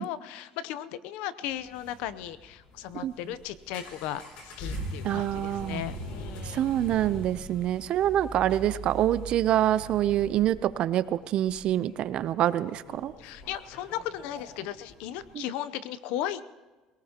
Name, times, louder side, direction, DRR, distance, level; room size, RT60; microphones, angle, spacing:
voice 1, 0.0-6.7 13.2-16.4, left 11 dB, 80° left, 15 dB, 0.7 m, -36 dB
sound 1, 1.5-15.3, right 1 dB, 65° left, 4.3 m, -42 dB
voice 2, 5.0-5.8 6.5-13.1 15.3-15.4, right 12 dB, 55° right, 15 dB, 0.6 m, -26 dB
22.0 x 18.5 x 2.9 m, 1.2 s
cardioid pair, 130°, 2 cm